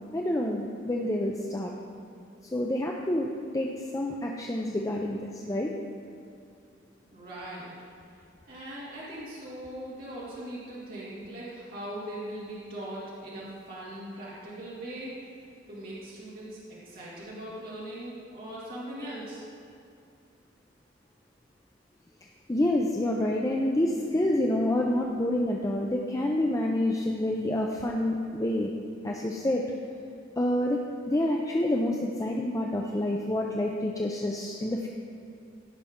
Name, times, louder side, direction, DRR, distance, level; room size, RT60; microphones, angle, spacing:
voice 1, 0.1-1.7 2.5-3.7 3.9-5.7 22.5-28.7 29.0-29.6 30.4-30.8 31.1-34.9, left 1 dB, 15° left, 0 dB, 0.5 m, -28 dB
voice 2, 7.1-7.7 8.5-15.1 15.7-19.4, right 1 dB, 50° right, -8 dB, 2.4 m, -40 dB
16.0 x 5.7 x 3.6 m, 2.5 s
head